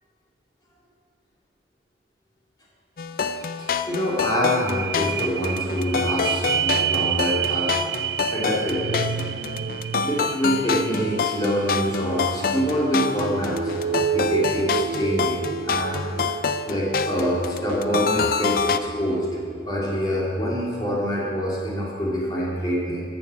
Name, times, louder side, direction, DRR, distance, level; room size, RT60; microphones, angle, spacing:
sound 1, 3.0-18.8, left 5 dB, 55° left, 0.4 m, -27 dB
voice 1, 3.4-7.7 8.3-9.0 10.0-13.8 14.1-16.0 16.7-19.3 19.7-23.0, equal, 25° left, -5 dB, 2.6 m, -25 dB
sound 2, 3.4-3.5 3.8-19.7 20.2-20.3, right 8 dB, 65° right, 0.3 m, -30 dB
12.5 x 7.0 x 7.0 m, 2.3 s
head